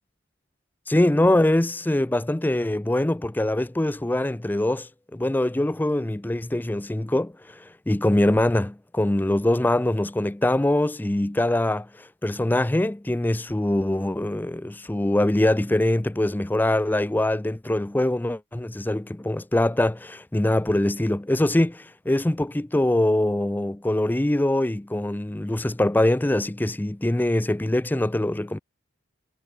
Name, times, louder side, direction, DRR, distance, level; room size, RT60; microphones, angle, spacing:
voice 1, 0.9-28.6, left 1 dB, 10° left, 0.4 m, -23 dB
head